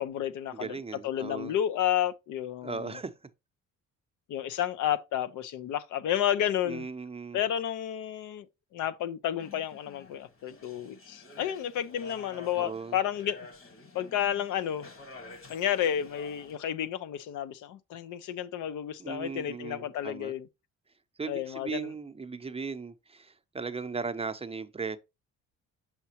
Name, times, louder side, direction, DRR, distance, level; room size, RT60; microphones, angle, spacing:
voice 1, 0.0-0.8 1.0-3.0 4.3-6.9 7.3-8.5 8.7-13.5 13.9-14.8 15.5-20.5 21.3-21.9, left 10 dB, 80° left, 0.7 m, -31 dB
voice 2, 0.5-1.6 2.6-3.1 6.6-7.4 12.6-13.0 19.0-20.3 21.2-25.0, right 4 dB, 20° right, 0.6 m, -37 dB
sound 1, 9.4-16.6, left 3 dB, 45° left, 1.6 m, -50 dB
5.8 x 5.7 x 2.9 m
cardioid pair, 90°, 30 cm